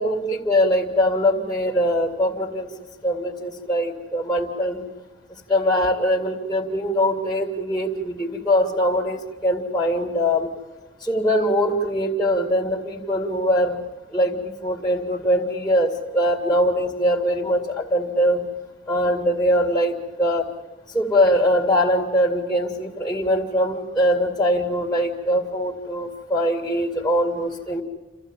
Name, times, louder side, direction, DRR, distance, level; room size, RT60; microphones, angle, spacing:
voice 1, 0.0-2.7 3.0-4.8 5.5-10.5 11.0-13.8 14.1-18.4 18.9-20.5 20.9-27.8, equal, 5° left, -1 dB, 2.2 m, -22 dB
28.0 x 14.5 x 9.0 m, 1.2 s
head